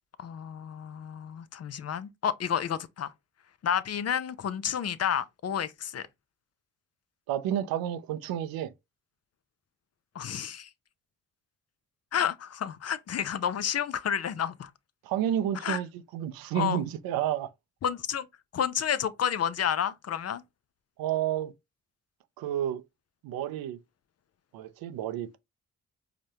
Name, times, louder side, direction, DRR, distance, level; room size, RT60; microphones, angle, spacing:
voice 1, 0.2-3.1 3.6-6.1 10.1-10.7 12.1-14.7 15.6-15.8 16.5-16.8 17.8-18.3 18.5-20.4, left 8 dB, 45° left, 0.5 m, -30 dB
voice 2, 7.3-8.7 15.0-17.5 21.0-21.5 22.4-22.8 23.2-23.8 24.5-25.4, right 10 dB, 80° right, 0.5 m, -30 dB
4.9 x 2.1 x 2.7 m
supercardioid pair, 40°, 35 cm